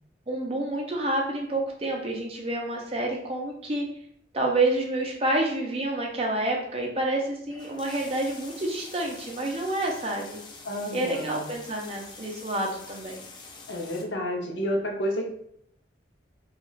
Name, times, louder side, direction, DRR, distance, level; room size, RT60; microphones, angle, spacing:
voice 1, 0.3-3.8 4.3-10.4 10.9-13.2, right 2 dB, 35° right, 0 dB, 0.5 m, -28 dB
sound 1, 7.5-14.0, left 3 dB, 25° left, 0.3 m, -46 dB
voice 2, 10.6-11.4 13.7-15.3, equal, 85° left, 0 dB, 0.6 m, -30 dB
2.4 x 2.3 x 3.1 m, 0.70 s
head